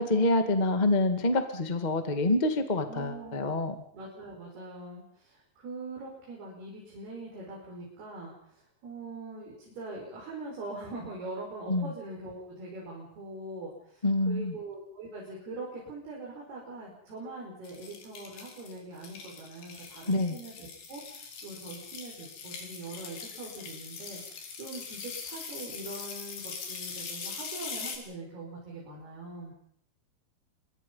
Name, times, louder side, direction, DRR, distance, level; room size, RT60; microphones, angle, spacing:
voice 1, 0.0-3.7 11.7-11.9 14.0-14.5 20.1-20.4, left 2 dB, 45° left, 7 dB, 0.5 m, -26 dB
voice 2, 2.8-3.5 3.9-29.5, right 2 dB, 75° right, -4 dB, 7.9 m, -42 dB
sound 1, 17.6-28.0, left 5 dB, 75° left, 5.5 m, -42 dB
27.0 x 23.5 x 5.6 m, 0.64 s
omnidirectional pair, 4.7 m